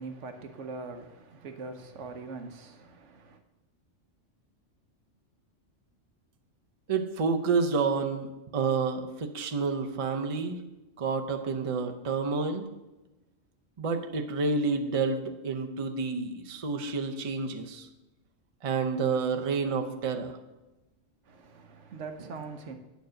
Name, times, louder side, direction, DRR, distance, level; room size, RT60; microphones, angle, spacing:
voice 1, 0.0-3.4 21.3-22.7, right 4 dB, 70° right, 1.1 m, -42 dB
voice 2, 6.9-10.6 11.0-12.7 13.8-17.9 18.6-20.4, right 4 dB, 35° right, 0.6 m, -29 dB
9.2 x 4.7 x 6.3 m
omnidirectional pair, 1.3 m